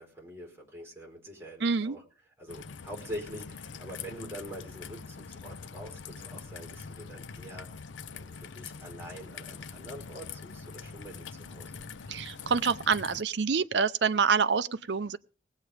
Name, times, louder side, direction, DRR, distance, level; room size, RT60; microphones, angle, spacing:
voice 1, 0.0-2.0 2.4-7.7 8.1-11.7, equal, 15° right, 4.4 m, -45 dB
voice 2, 1.6-2.0 12.1-15.2, right 5 dB, 75° right, 0.6 m, -27 dB
Raindrop / Trickle dribble, 2.5-13.2, left 5 dB, 90° left, 0.6 m, -44 dB
19.0 x 8.2 x 5.0 m
head